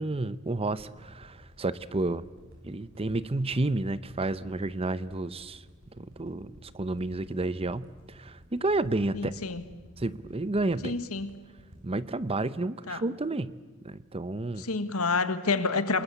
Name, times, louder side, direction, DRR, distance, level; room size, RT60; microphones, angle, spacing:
voice 1, 0.0-2.3 2.6-5.6 6.0-9.3 10.0-10.9 11.8-13.6 13.8-14.7, right 2 dB, 25° right, 16 dB, 0.8 m, -31 dB
sound 1, 0.8-13.1 13.5-13.6, equal, 65° right, 7.4 m, -53 dB
voice 2, 9.1-9.6 10.8-11.4 12.9-13.0 14.6-16.0, left 3 dB, 80° left, 11 dB, 1.7 m, -28 dB
28.5 x 21.0 x 8.5 m, 1.4 s
head